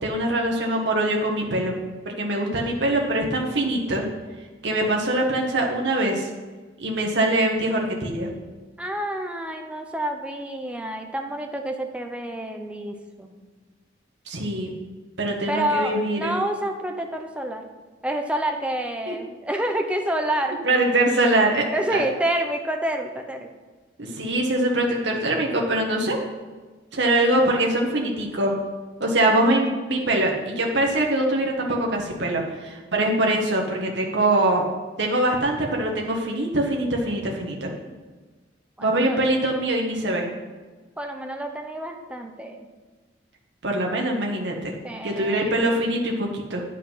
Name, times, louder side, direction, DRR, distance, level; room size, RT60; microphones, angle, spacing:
voice 1, 0.0-1.8 2.0-4.0 4.6-6.3 6.8-8.3 14.3-14.7 15.2-16.4 19.1-19.2 20.6-22.0 24.0-26.2 26.9-28.5 29.0-34.7 35.0-37.7 38.8-40.3 43.6-44.7 45.0-46.6, right 1 dB, 70° right, 0 dB, 1.3 m, -23 dB
voice 2, 8.8-13.4 15.5-17.7 18.0-20.6 21.7-23.5 37.7-38.0 38.8-39.2 41.0-42.7 44.8-45.6, right 1 dB, 5° right, 3 dB, 0.8 m, -28 dB
9.8 x 5.6 x 5.6 m, 1.3 s
head